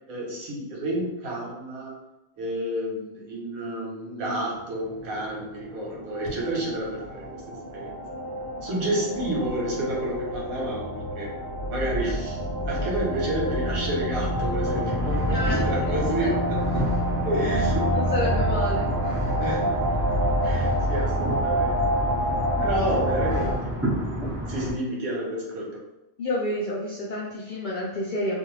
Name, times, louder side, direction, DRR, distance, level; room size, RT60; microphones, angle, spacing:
voice 1, 0.1-2.0 2.4-7.9 8.6-11.3 11.7-12.4 12.7-16.9 17.2-17.9 18.2-18.3 19.4-21.8 22.6-23.8 24.2-25.8, right 1 dB, 85° right, -3 dB, 1.3 m, -30 dB
sound 1, 4.6-23.5, equal, 55° right, 0.8 m, -27 dB
sound 2, 14.3-24.7, right 1 dB, 10° right, 1.1 m, -31 dB
voice 2, 15.3-15.9 16.2-16.3 17.9-19.2 20.4-20.6 22.8-23.2 26.2-28.4, left 1 dB, 80° left, -5 dB, 0.4 m, -30 dB
2.5 x 2.3 x 3.0 m, 0.92 s
omnidirectional pair, 1.5 m